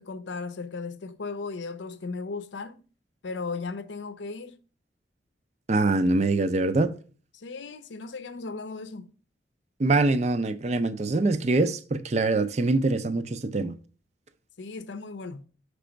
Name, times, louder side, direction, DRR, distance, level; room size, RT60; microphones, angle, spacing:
voice 1, 0.0-2.8 3.2-4.6 7.3-9.1 14.6-15.4, left 4 dB, 80° left, 0.6 m, -36 dB
voice 2, 5.7-6.9 9.8-13.7, right 2 dB, 35° right, 0.4 m, -24 dB
6.1 x 3.3 x 5.0 m
head